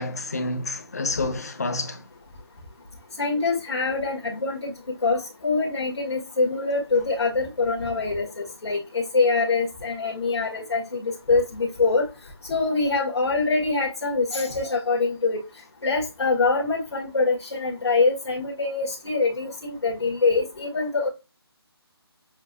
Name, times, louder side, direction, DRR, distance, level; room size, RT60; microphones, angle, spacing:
voice 1, 0.0-2.1, left 2 dB, 40° left, 0.7 m, -29 dB
voice 2, 3.2-4.7 5.0-12.0 12.5-15.4 15.8-21.1, left 3 dB, 85° left, 1.8 m, -24 dB
7.1 x 2.5 x 2.7 m
hypercardioid pair, 175°, 14 cm